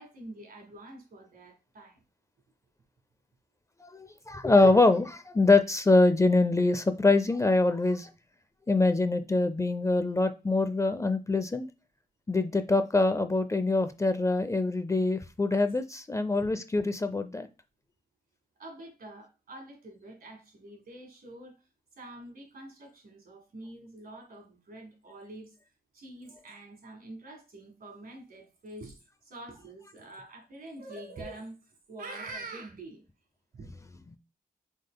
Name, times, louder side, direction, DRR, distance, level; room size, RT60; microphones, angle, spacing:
voice 1, 0.0-2.0 18.6-21.7 22.0-25.6 25.9-33.0 33.5-33.7, right 2 dB, 70° right, 1.8 m, -46 dB
voice 2, 3.8-8.1 8.7-11.7 12.3-17.5, left 2 dB, 20° left, 0.4 m, -24 dB
6.4 x 3.7 x 2.2 m
wide cardioid pair, 100°, 16 cm